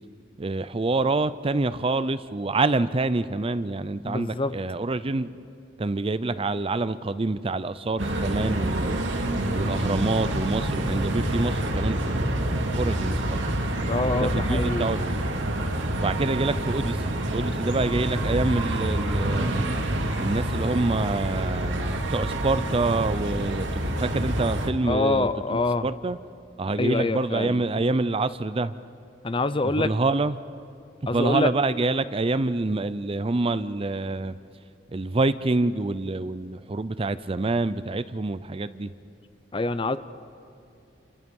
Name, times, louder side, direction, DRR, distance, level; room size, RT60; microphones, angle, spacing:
voice 1, 0.4-5.3 5.8-9.1 9.5-13.4 14.1-15.3 16.0-19.7 20.2-26.2 26.6-28.7 29.6-30.4 31.0-34.4 34.9-38.9, right 2 dB, 30° right, 14 dB, 0.5 m, -27 dB
voice 2, 4.0-4.5 13.9-14.9 24.9-25.9 26.8-27.6 29.2-29.9 31.1-31.5 39.5-40.0, left 2 dB, 30° left, 13 dB, 0.6 m, -25 dB
sound 1, 8.0-24.7, right 1 dB, 85° right, 2.3 m, -27 dB
29.5 x 29.0 x 5.4 m, 2.7 s
head